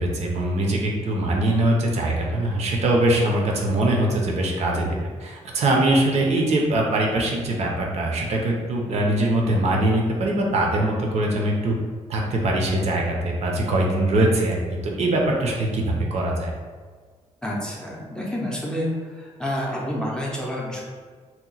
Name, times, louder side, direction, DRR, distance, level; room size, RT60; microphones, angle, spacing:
voice 1, 0.0-11.7 12.1-14.6 15.0-16.5, right 1 dB, 60° right, -1 dB, 0.5 m, -22 dB
voice 2, 17.4-20.8, equal, 5° left, -4 dB, 0.5 m, -29 dB
2.8 x 2.1 x 3.9 m, 1.5 s
wide cardioid pair, 155°, 13 cm